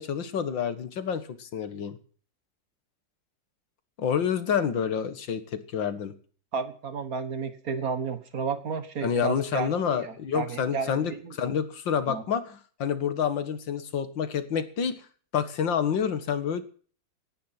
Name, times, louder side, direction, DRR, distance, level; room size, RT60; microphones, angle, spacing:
voice 1, 0.0-2.0 4.0-6.1 9.0-15.0 15.3-16.6, left 7 dB, 85° left, 12 dB, 2.3 m, -28 dB
voice 2, 6.5-11.5 12.1-12.2, right 5 dB, 50° right, 11 dB, 1.8 m, -32 dB
17.0 x 10.5 x 5.9 m, 0.43 s
omnidirectional pair, 2.0 m